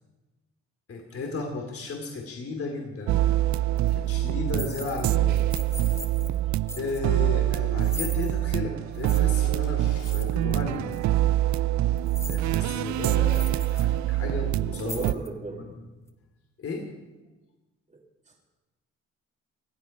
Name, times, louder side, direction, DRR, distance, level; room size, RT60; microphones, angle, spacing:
voice 1, 0.9-3.2 3.9-5.4 6.8-9.8 10.1-11.0 12.3-15.1 15.5-15.7 16.6-16.9, left 4 dB, 50° left, 2 dB, 2.8 m, -34 dB
sound 1, 3.1-15.1, right 13 dB, 70° right, 0.5 m, -25 dB
sound 2, 3.8-3.9 4.5-5.0 5.3-6.3 6.7-7.0 7.8-8.3 9.0-9.2 10.0-10.6 10.9-11.0 12.0-12.5 12.8-12.9 13.3-13.8 14.2-14.3 14.7-15.4, left 2 dB, 10° left, 1.3 m, -40 dB
Camera, 9.3-10.2 16.9-17.0, left 6 dB, 85° left, 3.0 m, -51 dB
voice 2, 14.8-15.7 17.9-18.4, right 3 dB, 25° right, -4 dB, 2.4 m, -37 dB
19.0 x 13.0 x 5.4 m, 1.2 s
cardioid pair, 90°, 30 cm